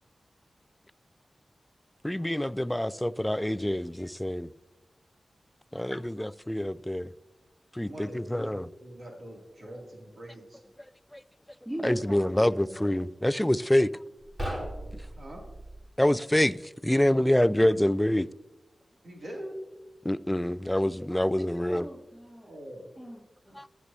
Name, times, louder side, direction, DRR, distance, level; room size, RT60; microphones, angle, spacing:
voice 1, 2.0-4.5 5.7-7.1 7.7-8.7 11.1-11.2 11.8-13.9 16.0-18.3 20.0-21.9 23.6-23.7, left 1 dB, 10° left, 0.3 m, -26 dB
voice 2, 7.8-10.6 15.1-15.4 19.0-19.6 22.5-22.9, right 1 dB, 65° right, 2.5 m, -43 dB
voice 3, 11.6-13.1 21.6-22.6 23.0-23.6, equal, 15° right, 2.8 m, -41 dB
sound 1, 14.2-15.9, equal, 30° right, 3.1 m, -37 dB
15.0 x 8.2 x 2.7 m
cardioid pair, 45°, 0 cm